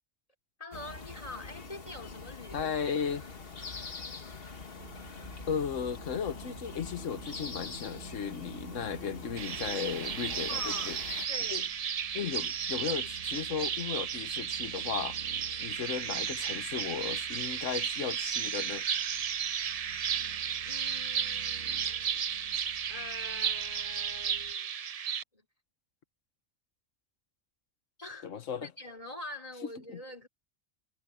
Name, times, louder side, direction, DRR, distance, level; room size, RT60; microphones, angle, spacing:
voice 1, 0.6-2.7 3.6-3.7 10.5-10.9 11.3-11.7 20.6-21.7 22.9-24.7 25.3-25.5 28.0-28.3 28.6-30.3, left 2 dB, 30° left, 3.3 m, -44 dB
sound 1, 0.7-11.3, left 4 dB, 50° left, 1.8 m, -44 dB
voice 2, 2.5-3.3 5.5-11.0 11.5-11.6 12.1-15.2 15.6-18.8 28.2-28.7 29.9-30.0, left 7 dB, 85° left, 1.5 m, -35 dB
sound 2, 4.8-24.5, right 4 dB, 80° right, 2.2 m, -52 dB
sound 3, 9.4-25.2, right 8 dB, 55° right, 0.4 m, -34 dB
omnidirectional pair, 1.3 m